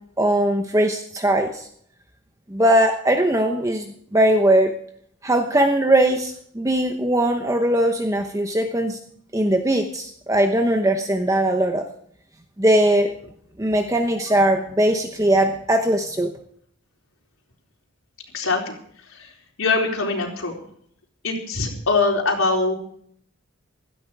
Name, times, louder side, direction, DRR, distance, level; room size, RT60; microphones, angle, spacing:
voice 1, 0.2-1.7 2.5-4.7 5.2-9.0 9.3-11.9 12.6-13.1 13.6-16.3, right 1 dB, 15° right, 5 dB, 0.9 m, -20 dB
voice 2, 18.3-18.7 19.1-19.3 19.6-20.6 21.2-22.7, left 3 dB, 80° left, 0 dB, 4.1 m, -22 dB
17.0 x 13.0 x 4.8 m, 0.64 s
head